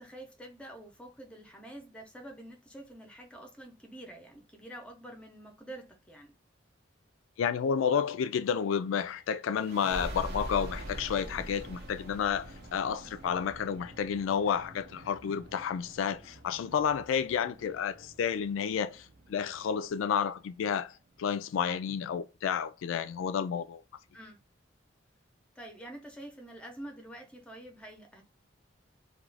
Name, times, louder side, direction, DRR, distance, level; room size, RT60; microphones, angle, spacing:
voice 1, 0.0-6.3 24.1-24.4 25.6-28.2, right 1 dB, 5° left, 0.6 m, -47 dB
voice 2, 7.4-23.8, left 7 dB, 85° left, 0.3 m, -31 dB
sound 1, 9.5-20.8, right 1 dB, 55° right, 0.6 m, -45 dB
2.4 x 2.3 x 3.2 m
head